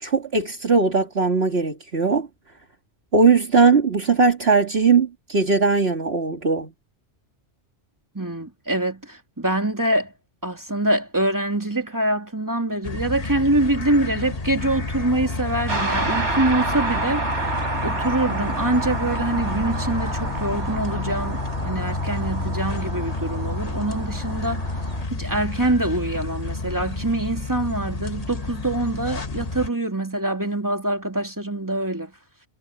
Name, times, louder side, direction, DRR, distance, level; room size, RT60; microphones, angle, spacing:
voice 1, 0.0-2.3 3.1-6.7, right 4 dB, 60° right, 2.5 m, -19 dB
voice 2, 8.1-10.1 10.4-17.2 17.8-24.7 25.1-32.1, right 1 dB, 15° right, 2.6 m, -24 dB
sound 1, 12.8-29.7, left 3 dB, 35° left, 1.5 m, -30 dB
sound 2, 15.7-25.0, right 3 dB, 85° right, 4.1 m, -29 dB
omnidirectional pair, 1.2 m